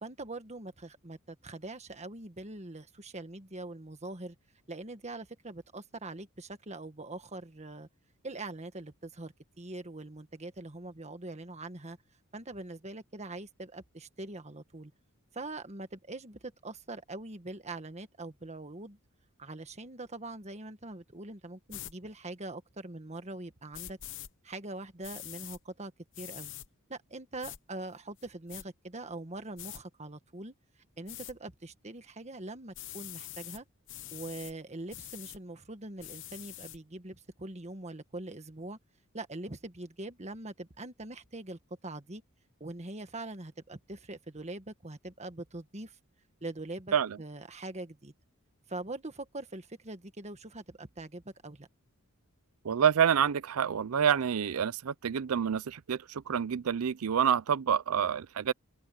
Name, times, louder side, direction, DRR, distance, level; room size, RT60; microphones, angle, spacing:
voice 1, 0.0-4.3 4.7-7.9 8.2-12.0 12.3-14.9 15.3-19.0 19.4-24.0 24.4-26.5 26.9-30.5 31.0-33.7 34.1-38.8 39.1-42.2 42.6-46.0 46.4-48.1 48.7-51.7, right 2 dB, 30° right, 1.6 m, -43 dB
sound 1, 21.7-21.9 23.7-24.3 25.0-25.6 26.1-26.7 27.4-27.6 28.2-28.6 29.6-29.8 31.1-31.3 32.7-33.6 33.9-34.5 34.9-35.4 36.0-36.8, left 13 dB, 60° left, 1.0 m, -44 dB
voice 2, 52.6-58.5, right 8 dB, 75° right, 0.5 m, -28 dB
head